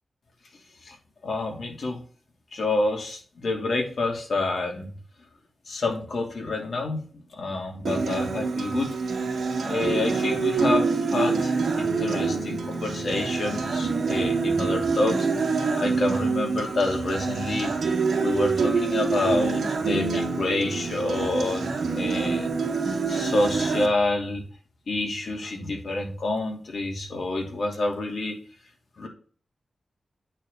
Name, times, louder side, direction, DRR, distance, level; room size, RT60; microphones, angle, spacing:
voice 1, 1.2-2.0 2.5-4.9 5.6-7.0 7.3-8.9 9.7-17.9 18.2-22.5 23.1-24.4 24.9-28.4 29.0-29.1, left 2 dB, 60° left, 1 dB, 2.8 m, -28 dB
Acoustic guitar, 7.8-23.9, right 4 dB, 80° right, 2.0 m, -26 dB
8.9 x 4.1 x 6.6 m, 0.41 s
wide cardioid pair, 135°, 0 cm